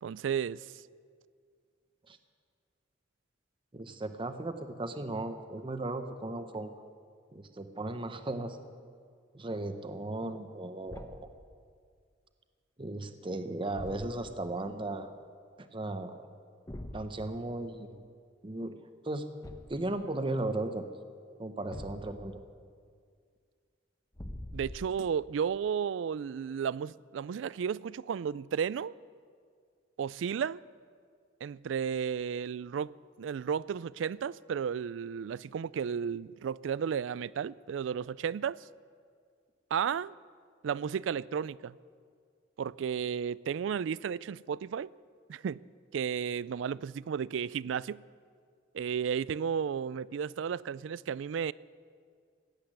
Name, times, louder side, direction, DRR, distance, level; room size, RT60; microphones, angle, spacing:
voice 1, 0.0-0.7 24.5-28.9 30.0-30.6 31.4-32.9 33.2-38.6 39.7-40.1 40.6-41.8 42.6-44.9 45.3-45.6 45.9-48.0 48.7-51.5, right 7 dB, 75° right, 0.3 m, -33 dB
voice 2, 3.7-6.7 7.3-8.6 9.3-11.3 12.8-15.1 15.6-16.2 16.9-18.0 18.4-18.8 19.0-19.3 19.7-20.9 21.4-22.4, right 2 dB, 25° right, 0.7 m, -36 dB
Thump thud, 10.9-11.4 13.7-14.4 16.7-17.1 19.4-19.9 21.7-22.4 24.1-25.1, left 1 dB, 20° left, 0.9 m, -44 dB
17.0 x 8.1 x 10.0 m
head